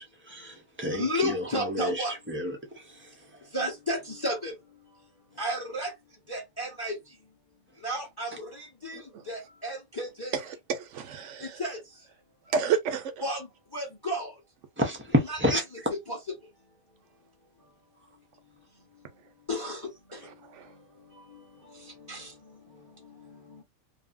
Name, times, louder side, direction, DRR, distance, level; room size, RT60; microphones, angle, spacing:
voice 1, 0.0-1.0 1.7-1.9 2.3-2.5 14.8-15.6, equal, 20° right, 0.3 m, -28 dB
voice 2, 0.9-7.4 7.7-10.3 11.4-12.1 12.4-12.5 13.2-14.4 15.2-17.0 17.6-17.8 18.1-19.1 19.5-23.6, equal, 20° left, 0.8 m, -36 dB
voice 3, 8.9-9.3 10.3-11.6 12.5-13.3 19.2-19.3 20.2-20.8, right 6 dB, 65° right, 0.8 m, -31 dB
2.7 x 2.6 x 2.4 m
omnidirectional pair, 1.5 m